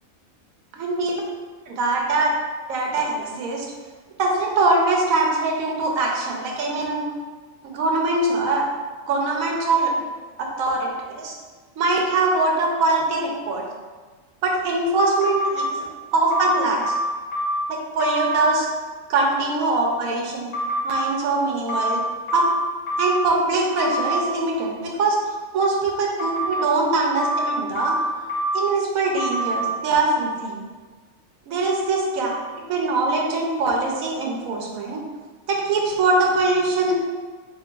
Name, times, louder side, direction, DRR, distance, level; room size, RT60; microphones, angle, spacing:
voice 1, 0.8-1.2 1.7-2.3 2.7-3.7 4.2-7.1 7.6-8.6 9.1-9.9 10.4-11.3 11.8-13.6 14.4-15.8 16.1-16.9 17.7-18.7 19.1-20.5 20.8-22.0 22.3-22.5 23.0-25.2 25.5-28.0 28.5-30.6 31.5-32.3 32.7-35.0 35.5-37.0, right 2 dB, 85° right, -1 dB, 1.1 m, -22 dB
sound 1, 15.2-15.7 16.3-17.7 18.0-18.5 20.5-21.1 21.7-23.3 23.8-24.2 26.2-26.7 27.2-28.7 29.2-29.6, equal, 85° left, 1.3 m, -25 dB
3.8 x 3.0 x 2.2 m, 1.4 s
omnidirectional pair, 1.4 m